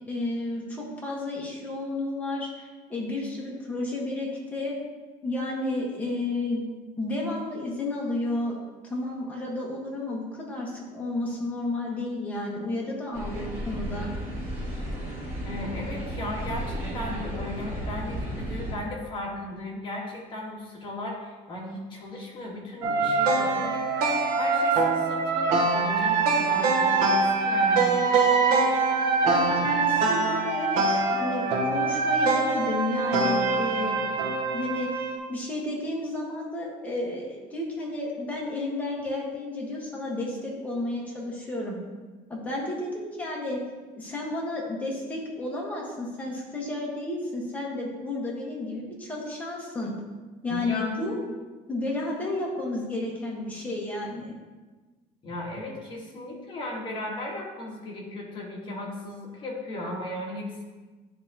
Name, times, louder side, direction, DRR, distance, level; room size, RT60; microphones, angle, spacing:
voice 1, 0.1-4.7 5.2-6.6 7.0-8.6 8.9-14.1 29.2-34.2 34.5-41.8 42.3-43.6 44.0-49.9 50.4-51.2 51.7-54.3, left 2 dB, 10° left, -4 dB, 1.3 m, -32 dB
sound 1, 13.1-18.7, equal, 15° right, 1.6 m, -33 dB
voice 2, 15.4-28.0 29.3-29.7 50.5-51.0 55.2-60.6, left 1 dB, 35° left, -3 dB, 1.4 m, -36 dB
sound 2, 22.8-35.2, right 3 dB, 80° right, 0.9 m, -24 dB
10.0 x 3.5 x 2.8 m, 1.3 s
cardioid pair, 160°, 15 cm